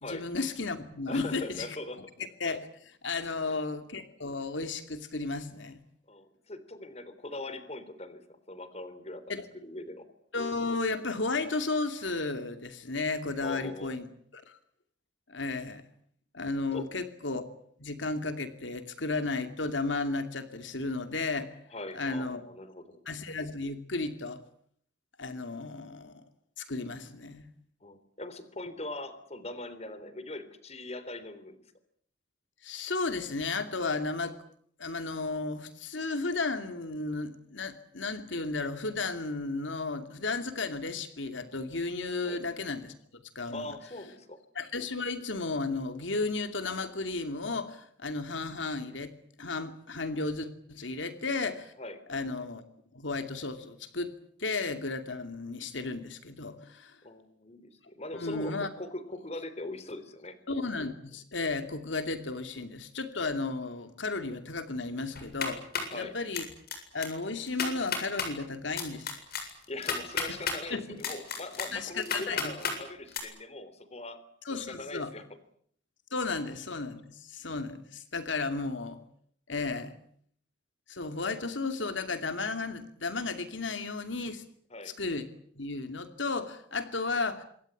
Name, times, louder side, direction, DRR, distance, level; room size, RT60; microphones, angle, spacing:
voice 1, 0.0-1.7 2.4-5.8 9.3-9.4 10.3-14.1 14.3-14.6 15.3-15.8 16.3-17.4 17.8-21.5 21.9-22.4 23.1-24.4 25.2-26.2 26.6-27.5 32.6-34.4 34.8-42.9 43.3-43.7 44.5-49.1 49.4-51.7 52.1-52.6 52.9-54.1 54.4-57.0 58.1-58.7 60.5-65.6 65.9-66.5 66.9-69.1 70.7-71.0 71.7-72.5 74.4-75.1 76.1-79.0 79.5-79.9 80.9-84.4 84.8-85.3 85.6-87.4, left 3 dB, 80° left, 8 dB, 2.6 m, -34 dB
voice 2, 1.1-2.0 3.5-3.6 6.1-10.1 13.4-14.0 16.7-16.9 21.7-23.0 27.8-31.6 42.2-42.4 43.5-44.4 50.8-50.9 51.8-52.0 57.0-60.4 65.9-66.2 69.7-75.3 84.7-84.9, left 2 dB, 35° left, 13 dB, 3.5 m, -41 dB
sound 1, 65.2-66.0 66.3-66.8 67.0-67.1 67.5-68.3 68.8-70.6 71.0-72.8 73.1-73.2, left 5 dB, 55° left, 7.7 m, -32 dB
27.0 x 22.5 x 8.5 m, 0.63 s
head